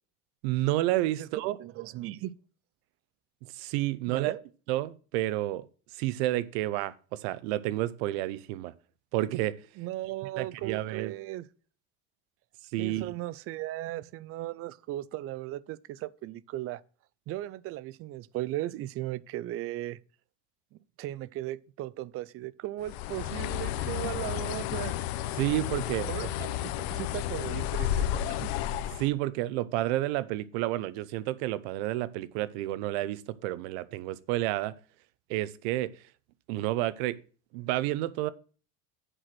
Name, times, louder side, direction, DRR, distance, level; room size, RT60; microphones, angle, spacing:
voice 1, 0.4-1.5 3.4-4.3 4.7-5.6 5.9-8.7 9.1-9.6 10.4-11.1 12.7-13.1 25.4-26.5 29.0-34.7 35.3-35.9 36.5-37.2 37.5-38.3, right 15 dB, 80° right, 0.7 m, -30 dB
voice 2, 1.6-2.3 4.1-4.4 9.8-11.5 12.8-16.8 17.3-20.0 21.0-25.0 26.1-26.3 26.6-28.5, right 15 dB, 45° right, 0.5 m, -37 dB
Bird, 22.8-29.1, left 12 dB, 80° left, 0.8 m, -32 dB
8.0 x 5.9 x 6.0 m
cardioid pair, 130°, 32 cm